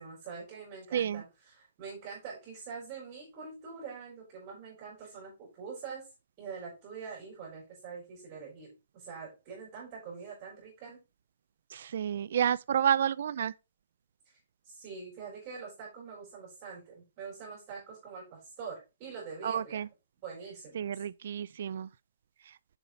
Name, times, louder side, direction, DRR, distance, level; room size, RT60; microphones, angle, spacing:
voice 1, 0.0-6.1 6.4-8.7 8.9-11.0 14.2-14.4 14.6-19.9 20.2-21.0, right 5 dB, 25° right, 4.3 m, -44 dB
voice 2, 0.9-1.2 11.7-13.5 19.4-19.9 20.8-21.9, right 9 dB, 50° right, 0.3 m, -30 dB
7.1 x 5.5 x 5.1 m
hypercardioid pair, 175°, 0 cm